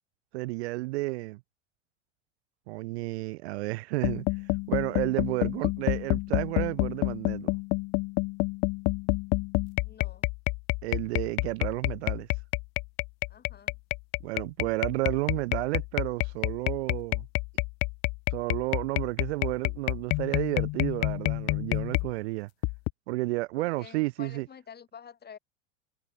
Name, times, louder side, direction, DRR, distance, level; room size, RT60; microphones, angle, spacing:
voice 1, 0.3-1.4 2.7-4.4 4.7-7.6 10.8-12.3 14.2-17.3 18.3-22.5 23.1-24.5, right 21 dB, 60° right, 0.7 m, -31 dB
sound 1, 4.0-22.1 22.6-22.9, left 27 dB, 45° left, 0.9 m, -29 dB
voice 2, 9.8-10.3 13.3-13.8 23.5-25.4, left 7 dB, 25° left, 4.3 m, -48 dB
figure-of-eight pair, 80°, 37 cm